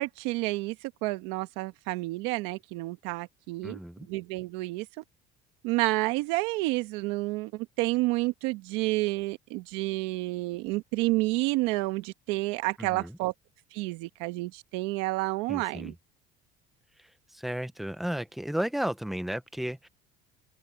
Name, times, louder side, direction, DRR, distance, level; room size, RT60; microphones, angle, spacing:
voice 1, 0.0-3.8 4.1-5.0 5.6-13.3 13.7-15.9, right 21 dB, 80° right, 1.6 m, -30 dB
voice 2, 3.6-4.1 12.8-13.2 15.5-15.9 17.0-19.9, equal, ahead, 0.8 m, -34 dB
open air
cardioid pair, 165°, 18 cm